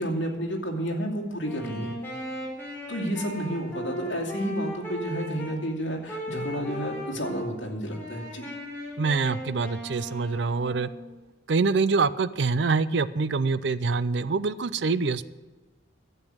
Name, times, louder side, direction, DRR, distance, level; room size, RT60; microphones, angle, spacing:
voice 1, 0.0-2.0 2.9-8.5, equal, 75° left, 0 dB, 2.5 m, -31 dB
Wind instrument woodwind instrument, 1.4-5.6 6.1-7.5 7.9-11.1, equal, 10° left, 3.8 m, -37 dB
voice 2, 9.0-10.9 11.5-15.2, right 4 dB, 65° right, 15 dB, 0.5 m, -25 dB
12.0 x 8.3 x 7.7 m, 1.3 s
head